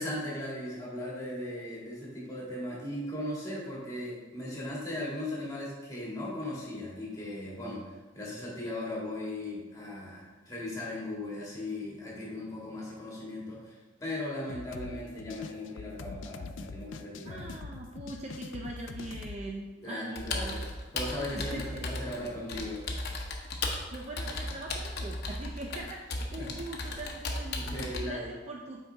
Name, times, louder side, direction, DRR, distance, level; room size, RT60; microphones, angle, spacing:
voice 1, 0.0-17.5 19.8-22.8 26.4-26.5 27.6-28.3, left 1 dB, 20° left, -5 dB, 1.9 m, -38 dB
sound 1, 14.5-19.4, left 4 dB, 70° left, 0.4 m, -43 dB
voice 2, 17.2-20.6 21.4-21.9 23.9-28.8, right 2 dB, 35° right, 0 dB, 0.5 m, -42 dB
Computer keyboard, 20.2-28.0, left 2 dB, 55° left, 0.9 m, -36 dB
7.9 x 4.7 x 3.5 m, 1.2 s
head